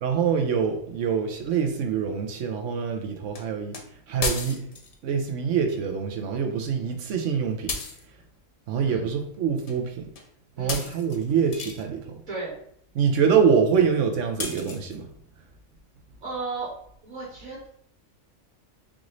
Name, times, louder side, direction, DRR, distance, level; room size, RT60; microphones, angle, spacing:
voice 1, 0.0-3.8 4.1-4.6 5.0-7.8 8.7-10.1 10.6-12.2 12.9-15.1, right 6 dB, 70° right, 4 dB, 1.0 m, -25 dB
sound 1, 3.3-3.4 3.7-3.8 4.2-4.9 7.7-8.0 9.7-9.8 10.2-10.3 10.7-11.8 14.4-15.0, left 4 dB, 85° left, 0.3 m, -33 dB
voice 2, 16.2-16.7 17.0-17.7, right 3 dB, 90° right, -6 dB, 1.8 m, -34 dB
4.9 x 2.6 x 3.0 m, 0.66 s
omnidirectional pair, 1.4 m